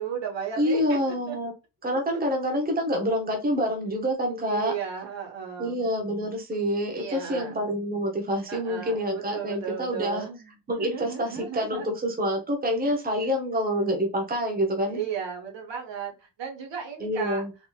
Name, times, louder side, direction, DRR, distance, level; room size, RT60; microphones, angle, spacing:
voice 1, 0.0-1.0 1.3-1.4 2.1-2.3 4.5-5.8 7.0-7.6 8.5-11.9 14.9-17.4, right 7 dB, 85° right, 1 dB, 1.3 m, -35 dB
voice 2, 0.6-1.5 1.8-4.7 5.6-10.2 10.7-15.0 17.0-17.5, equal, 20° right, 1 dB, 0.8 m, -27 dB
4.0 x 2.9 x 2.3 m, 0.28 s
wide cardioid pair, 165°, 43 cm